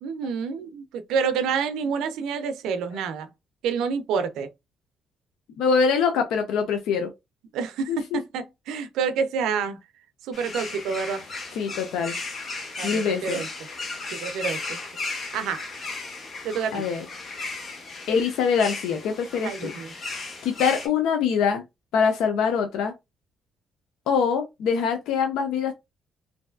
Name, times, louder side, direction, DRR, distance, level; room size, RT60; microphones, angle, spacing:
voice 1, 0.0-3.3 3.6-4.5 7.5-9.8 10.2-11.3 12.8-13.5 14.1-14.8 15.3-15.6 16.4-16.8 19.4-19.9, right 6 dB, 90° right, 0.4 m, -28 dB
voice 2, 5.6-7.1 7.9-8.0 11.6-12.2 12.8-13.4 16.7-17.0 18.1-19.7 20.4-21.6 21.9-22.9 24.1-25.7, left 6 dB, 90° left, 0.4 m, -24 dB
sound 1, 10.3-20.9, left 3 dB, 45° left, 0.9 m, -35 dB
3.1 x 2.6 x 2.2 m
cardioid pair, 90°, 0 cm